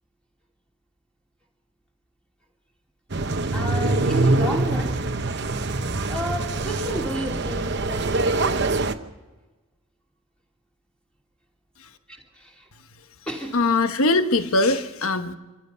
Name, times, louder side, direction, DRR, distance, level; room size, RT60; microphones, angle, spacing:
sound 1, 3.1-8.9, right 2 dB, 50° right, 0.9 m, -24 dB
voice 1, 3.5-5.0 6.1-8.8 12.1-12.6 13.3-13.6, right 1 dB, 5° left, 2.7 m, -32 dB
voice 2, 13.5-15.3, left 2 dB, 75° left, 1.2 m, -21 dB
25.5 x 15.0 x 6.9 m
head